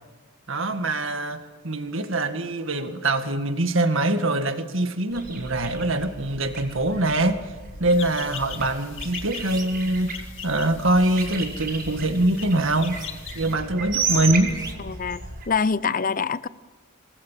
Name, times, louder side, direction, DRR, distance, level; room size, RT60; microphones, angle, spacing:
voice 1, 0.5-7.4 7.8-10.1 10.4-12.9 13.4-14.5, right 2 dB, 65° right, 1.9 m, -23 dB
sound 1, 5.1-15.5, right 4 dB, 50° right, 6.4 m, -34 dB
sound 2, 7.9-13.5, left 9 dB, 65° left, 2.0 m, -41 dB
sound 3, 9.2-10.0 10.4-12.1 12.8-13.5 13.8-15.0, right 4 dB, 20° right, 2.3 m, -42 dB
voice 2, 14.8-16.5, left 5 dB, 40° left, 0.7 m, -25 dB
26.5 x 21.0 x 7.5 m
head